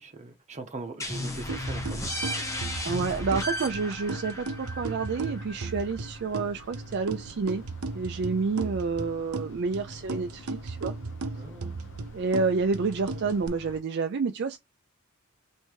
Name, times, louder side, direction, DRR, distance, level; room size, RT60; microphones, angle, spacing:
voice 1, 0.0-2.1 11.3-11.8, right 3 dB, 35° right, 1.0 m, -41 dB
sound 1, 1.0-6.4, left 1 dB, 15° left, 0.9 m, -35 dB
sound 2, 1.3-13.8, left 1 dB, 60° left, 0.8 m, -50 dB
sound 3, 1.5-13.5, right 3 dB, 85° right, 0.7 m, -37 dB
voice 2, 2.8-7.6 7.9-10.9 12.1-14.6, right 4 dB, 50° right, 0.4 m, -29 dB
3.4 x 2.6 x 4.6 m
head